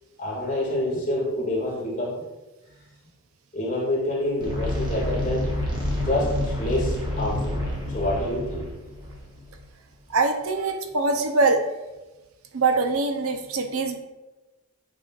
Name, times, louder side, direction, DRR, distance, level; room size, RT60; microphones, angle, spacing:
voice 1, 0.2-2.2 3.5-5.5 6.0-7.6 7.9-8.7, left 1 dB, 35° left, -5 dB, 2.1 m, -27 dB
sound 1, 4.4-9.6, left 1 dB, 20° right, 1.3 m, -28 dB
voice 2, 10.1-11.6 12.5-14.0, right 3 dB, 75° right, 6 dB, 0.6 m, -23 dB
8.3 x 5.5 x 2.5 m, 1.1 s
head